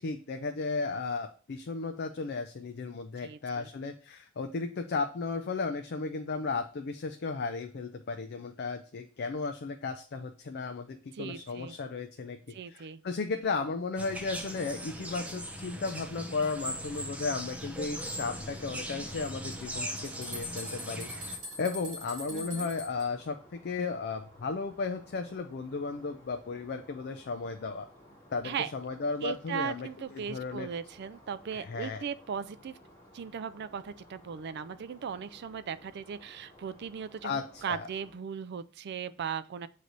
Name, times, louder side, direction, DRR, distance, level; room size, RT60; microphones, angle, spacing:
voice 1, 0.0-27.9 28.3-30.7 31.5-32.0 37.2-37.9, left 4 dB, 50° left, 5 dB, 0.5 m, -35 dB
voice 2, 3.2-3.7 11.2-11.7 12.5-13.0 22.3-22.7 28.4-28.7 29.2-32.8 33.1-39.7, right 7 dB, 55° right, 13 dB, 0.4 m, -38 dB
sound 1, 14.0-21.4, equal, 5° right, 0.7 m, -39 dB
sound 2, 19.9-23.0, left 1 dB, 40° right, 2.3 m, -42 dB
sound 3, 20.5-38.1, equal, 15° left, 2.0 m, -57 dB
7.8 x 3.2 x 4.0 m, 0.39 s
head